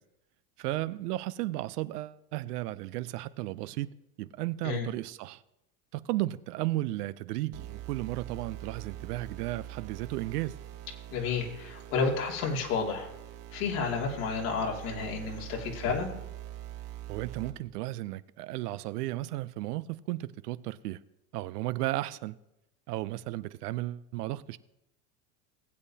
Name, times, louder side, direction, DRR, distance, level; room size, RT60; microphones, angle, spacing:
voice 1, 0.6-5.4 5.9-10.5 17.1-21.0 21.3-22.4 22.9-24.6, right 16 dB, 90° right, 0.7 m, -34 dB
sound 1, 7.5-17.5, right 13 dB, 60° right, 1.7 m, -44 dB
voice 2, 11.1-13.1 13.5-16.1, left 5 dB, 75° left, 2.7 m, -31 dB
19.0 x 8.3 x 2.8 m
supercardioid pair, 115°, 45 cm